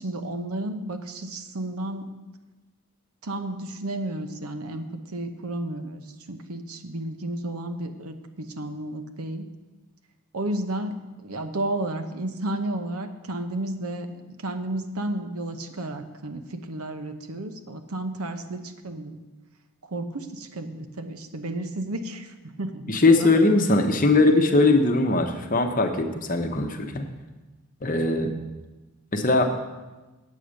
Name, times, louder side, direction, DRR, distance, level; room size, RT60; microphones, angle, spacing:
voice 1, 0.0-2.1 3.2-9.5 10.3-19.2 19.9-23.3 24.0-24.1, right 1 dB, 80° right, 7 dB, 0.9 m, -32 dB
voice 2, 22.9-27.1 27.8-28.3 29.1-29.5, left 2 dB, 35° left, 5 dB, 0.9 m, -20 dB
8.5 x 8.5 x 6.4 m, 1.2 s
head